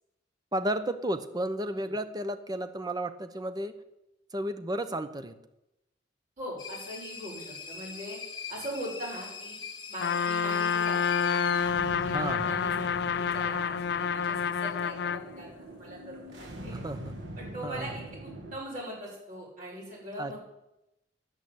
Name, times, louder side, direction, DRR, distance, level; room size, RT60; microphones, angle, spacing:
voice 1, 0.5-3.8 4.3-5.4 12.1-12.6 16.7-17.0 17.6-17.9 20.2-20.3, right 1 dB, 20° right, 11 dB, 0.8 m, -33 dB
voice 2, 6.4-8.2 8.5-9.6 9.9-13.0 13.3-16.8 17.4-20.4, equal, 45° right, -3 dB, 6.4 m, -41 dB
sound 1, 6.6-13.0, left 5 dB, 25° left, 1.5 m, -43 dB
Trumpet, 10.0-15.3, left 7 dB, 60° left, 0.4 m, -28 dB
sound 2, 11.5-18.6, right 1 dB, 75° right, 1.9 m, -43 dB
11.0 x 8.8 x 8.1 m, 0.92 s
head